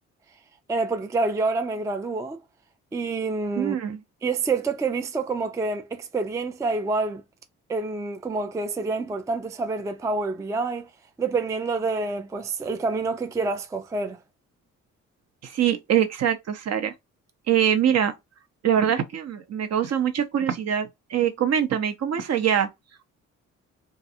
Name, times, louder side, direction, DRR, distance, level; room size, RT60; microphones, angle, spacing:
voice 1, 0.7-2.4 2.9-3.8 4.2-7.2 7.7-10.9 11.2-14.2, right 3 dB, 10° right, 0.3 m, -27 dB
voice 2, 3.6-4.0 15.4-16.9 17.5-18.1 18.6-22.7, right 9 dB, 60° right, 0.7 m, -23 dB
2.4 x 2.3 x 2.7 m
cardioid pair, 90°, 30 cm